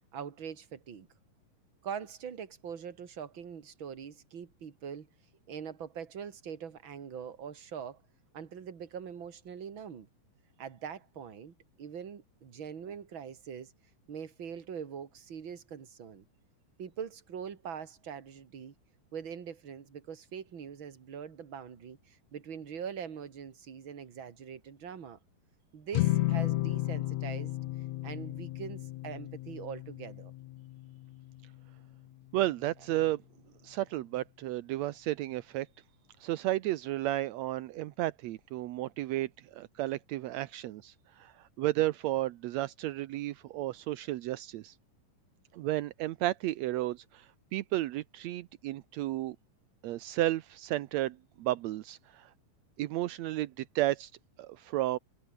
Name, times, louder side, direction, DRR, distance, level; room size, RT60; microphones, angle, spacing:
voice 1, 0.1-1.1 1.8-5.1 5.5-8.0 8.3-10.1 10.6-13.7 14.1-16.2 16.8-18.7 19.1-25.2 25.7-27.5 28.0-30.3, right 7 dB, 40° right, 2.6 m, -43 dB
sound 1, 25.9-32.4, left 16 dB, 75° left, 1.7 m, -34 dB
voice 2, 32.3-33.2 33.6-35.7 36.2-44.7 45.5-49.4 49.8-52.3 52.8-54.1 54.4-55.0, right 15 dB, 75° right, 1.6 m, -33 dB
omnidirectional pair, 4.0 m